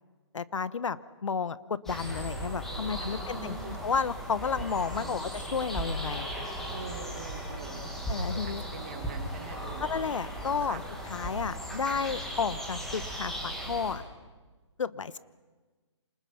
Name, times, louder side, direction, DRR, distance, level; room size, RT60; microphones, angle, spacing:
voice 1, 0.3-6.5 8.1-8.6 9.8-14.0 14.8-15.2, left 5 dB, 85° left, 16 dB, 1.1 m, -32 dB
sound 1, 1.8-13.9, equal, ahead, 2.0 m, -37 dB
voice 2, 2.7-3.8 4.9-5.3 6.7-7.9 8.3-9.9 10.6-10.8, right 6 dB, 25° right, 4 dB, 2.6 m, -44 dB
28.5 x 27.0 x 5.9 m, 1.3 s
hypercardioid pair, 180°, 16 cm